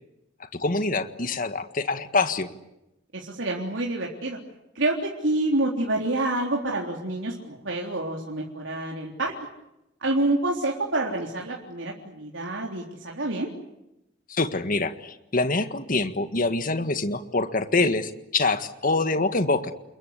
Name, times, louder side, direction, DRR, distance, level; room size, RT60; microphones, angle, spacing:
voice 1, 0.4-2.5 14.3-19.7, left 3 dB, 50° left, 9 dB, 1.7 m, -25 dB
voice 2, 3.1-4.4 4.8-9.3 10.0-13.5, right 2 dB, 85° right, -1 dB, 3.7 m, -27 dB
29.5 x 22.0 x 8.3 m, 0.89 s
head